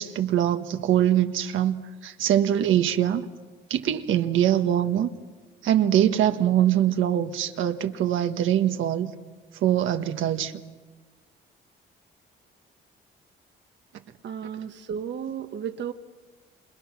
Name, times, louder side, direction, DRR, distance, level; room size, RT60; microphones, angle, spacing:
voice 1, 0.0-3.3 3.7-5.1 5.6-9.1 9.5-10.5, right 11 dB, 80° right, 7 dB, 1.5 m, -23 dB
voice 2, 14.2-15.9, right 8 dB, 65° right, 8 dB, 1.2 m, -33 dB
28.0 x 28.0 x 6.0 m, 1.3 s
cardioid pair, 90°, 20 cm